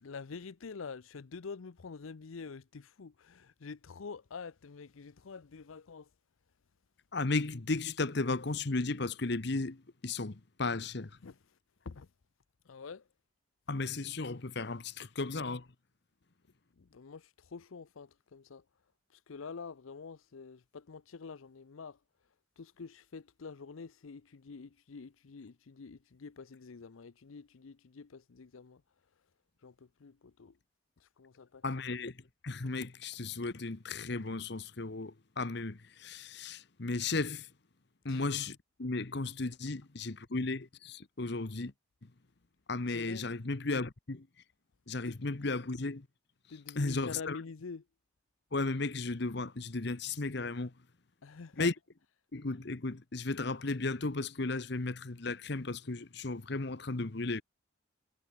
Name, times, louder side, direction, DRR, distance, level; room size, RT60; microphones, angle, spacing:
voice 1, 0.0-6.1 11.2-11.4 11.8-12.1 12.7-13.1 16.8-18.6 19.1-22.0 22.6-28.8 29.6-30.6 31.0-31.6 38.1-38.3 42.9-43.2 45.0-45.2 46.5-47.8 51.2-51.7, left 5 dB, 80° left, 0.6 m, -47 dB
voice 2, 7.1-11.1 13.7-15.7 31.6-32.1 32.4-37.5 38.0-41.7 42.7-44.3 44.9-46.1 46.7-47.4 48.5-50.7 51.6-51.7 52.3-57.4, left 3 dB, 55° left, 1.0 m, -35 dB
head